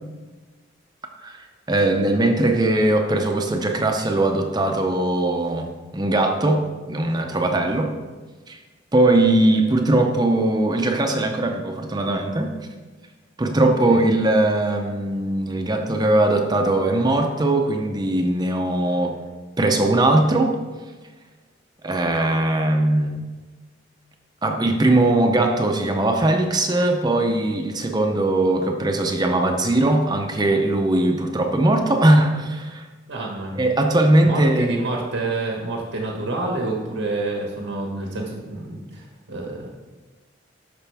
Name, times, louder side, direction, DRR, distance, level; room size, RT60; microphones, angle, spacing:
voice 1, 1.2-5.7 5.9-7.9 8.5-8.6 8.9-12.5 13.4-19.2 19.6-20.5 21.8-23.2 24.4-32.8 33.6-34.7, right 1 dB, 20° right, 3 dB, 0.6 m, -20 dB
voice 2, 13.6-14.0 33.1-33.6 34.2-39.7, right 2 dB, 80° right, -1 dB, 1.2 m, -28 dB
12.5 x 5.1 x 3.4 m, 1.3 s
head